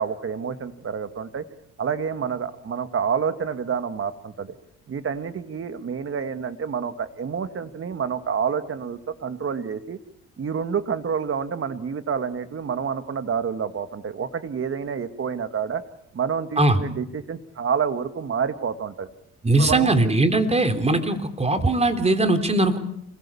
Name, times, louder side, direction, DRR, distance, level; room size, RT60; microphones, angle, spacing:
voice 1, 0.0-1.4 1.8-4.5 4.9-10.0 10.4-15.8 16.1-19.1 19.6-19.9, right 6 dB, 45° right, 10 dB, 2.2 m, -28 dB
voice 2, 19.4-22.8, right 2 dB, 20° right, 8 dB, 3.5 m, -20 dB
27.5 x 21.0 x 7.2 m, 0.75 s
cardioid pair, 90°, 30 cm